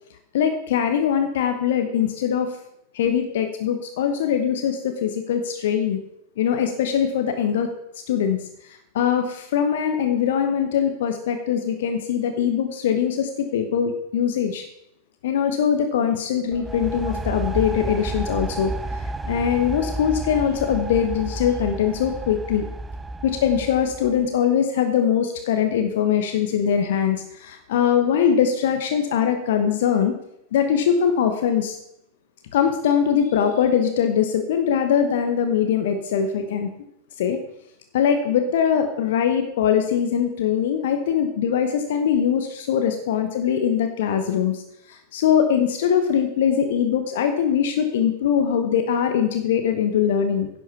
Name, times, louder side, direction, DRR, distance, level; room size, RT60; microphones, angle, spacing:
voice 1, 0.3-2.5 2.9-6.0 6.4-7.7 8.1-8.4 8.9-14.6 15.2-18.7 19.3-22.7 23.2-30.1 30.5-31.8 32.5-36.7 37.2-37.4 37.9-44.6 45.1-50.5, left 8 dB, 55° left, 6 dB, 1.1 m, -22 dB
sound 1, 16.5-24.3, right 2 dB, 10° right, 0.6 m, -31 dB
11.0 x 7.6 x 5.8 m, 0.78 s
figure-of-eight pair, 90°, 0 cm